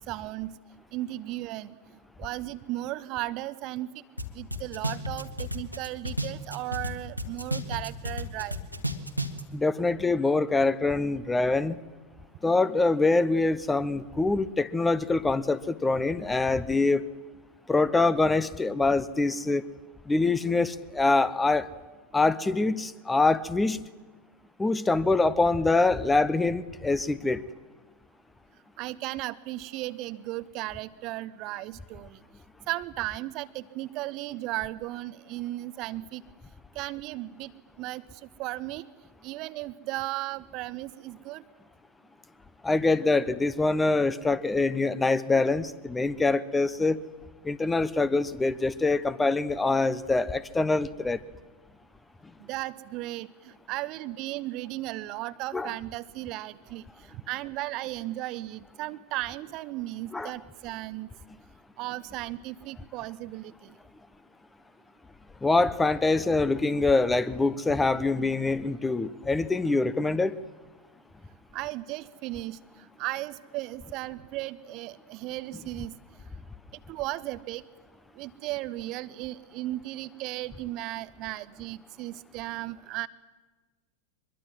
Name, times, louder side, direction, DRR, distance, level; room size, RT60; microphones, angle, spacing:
voice 1, 0.1-0.5 0.9-1.8 2.2-4.0 4.3-8.6 28.8-32.2 32.7-36.2 36.7-37.5 37.8-38.8 39.2-41.4 52.4-61.1 61.8-63.7 71.5-72.6 73.0-75.9 76.9-77.6 78.1-83.1, right 17 dB, 40° right, 15 dB, 0.9 m, -35 dB
sound 1, 4.2-4.3 4.5-6.9 7.2-9.4, equal, 90° right, 1.9 m, -31 dB
voice 2, 9.5-11.8 12.4-17.0 17.7-19.6 20.1-21.7 22.1-23.8 24.6-27.4 42.6-47.0 47.4-51.2 55.5-55.7 60.1-60.3 65.4-70.3, left 3 dB, 10° left, 17 dB, 0.9 m, -24 dB
23.5 x 22.0 x 7.8 m, 1.3 s
figure-of-eight pair, 90°, 0 cm